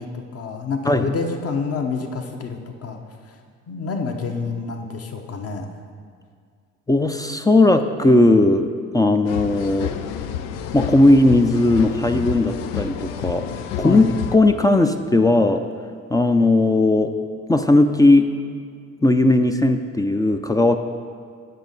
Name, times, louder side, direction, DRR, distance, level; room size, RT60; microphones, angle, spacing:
voice 1, 0.0-3.0 3.3-3.4 3.7-5.7 13.8-14.1, left 4 dB, 45° left, 4 dB, 1.0 m, -28 dB
voice 2, 6.9-8.6 8.9-10.0 10.7-13.5 13.8-15.6 16.1-17.1 17.5-18.3 19.0-20.8, left 2 dB, 10° left, 7 dB, 0.4 m, -17 dB
sound 1, 9.3-14.4, left 9 dB, 70° left, 0.5 m, -30 dB
9.2 x 6.4 x 4.1 m, 2.1 s
hypercardioid pair, 50°, 35 cm